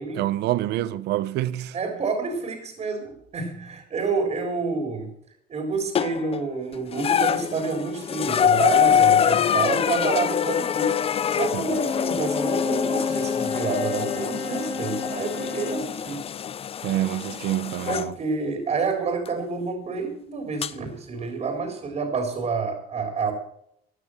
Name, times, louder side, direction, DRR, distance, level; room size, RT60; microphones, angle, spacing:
voice 1, 0.1-1.8 11.5-11.7 16.8-18.1, right 14 dB, 80° right, 0.9 m, -26 dB
voice 2, 1.7-5.1 5.5-16.3 17.9-23.3, right 4 dB, 40° right, 3.9 m, -28 dB
sound 1, 5.9-6.4 6.9-18.1 19.3-19.4 20.6-20.7, left 8 dB, 35° left, 0.5 m, -24 dB
Bowed string instrument, 11.6-15.9, left 4 dB, 60° left, 5.3 m, -30 dB
15.5 x 9.7 x 6.5 m
cardioid pair, 110°, 17 cm